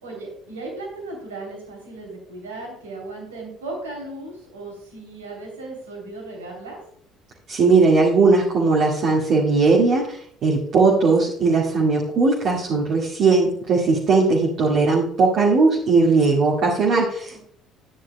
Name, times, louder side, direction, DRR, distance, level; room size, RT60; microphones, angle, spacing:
voice 1, 0.0-6.8 17.3-17.4, right 2 dB, 75° right, 0 dB, 3.1 m, -36 dB
voice 2, 7.5-17.4, right 3 dB, 50° right, -4 dB, 1.9 m, -18 dB
12.0 x 9.9 x 2.2 m, 0.62 s
figure-of-eight pair, 55°, 0 cm